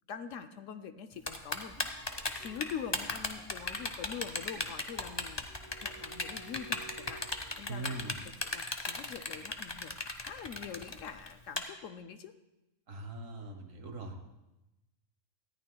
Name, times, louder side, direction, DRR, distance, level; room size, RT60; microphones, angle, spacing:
voice 1, 0.1-8.1 8.4-12.3, left 7 dB, 70° left, 9 dB, 0.9 m, -44 dB
Typing, 1.3-11.6, left 3 dB, 25° left, 0.6 m, -35 dB
sound 1, 1.6-8.1, right 1 dB, 45° left, 1.9 m, -53 dB
voice 2, 7.7-8.1 12.9-14.2, right 2 dB, 65° right, 5 dB, 1.6 m, -41 dB
18.5 x 14.0 x 2.3 m, 0.98 s
omnidirectional pair, 1.5 m